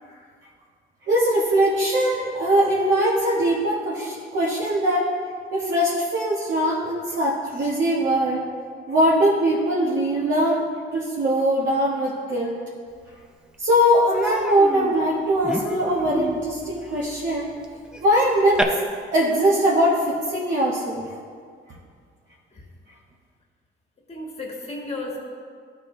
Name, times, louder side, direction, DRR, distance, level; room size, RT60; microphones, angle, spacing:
voice 1, 1.1-5.1 5.5-8.4 8.9-10.6 10.9-12.6 13.6-17.5 18.0-18.6 19.1-21.0, equal, 65° right, -6 dB, 1.1 m, -21 dB
Human voice, 13.1-13.2 13.5-13.7 14.1-18.6, right 1 dB, 5° right, 0.6 m, -32 dB
voice 2, 24.1-25.2, left 2 dB, 30° left, -1 dB, 1.7 m, -33 dB
12.0 x 4.3 x 3.1 m, 2.1 s
cardioid pair, 90°, 20 cm